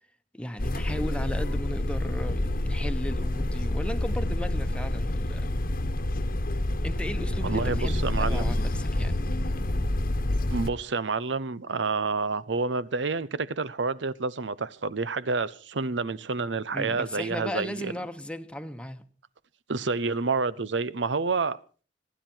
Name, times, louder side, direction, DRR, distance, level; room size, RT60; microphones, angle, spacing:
voice 1, 0.3-5.5 6.8-9.2 16.7-19.0, equal, 5° left, 1.1 m, -36 dB
sound 1, 0.6-10.7, left 1 dB, 55° left, 1.1 m, -28 dB
voice 2, 7.4-8.5 10.5-17.9 19.7-21.8, right 4 dB, 85° right, 0.8 m, -29 dB
26.0 x 11.0 x 4.5 m
head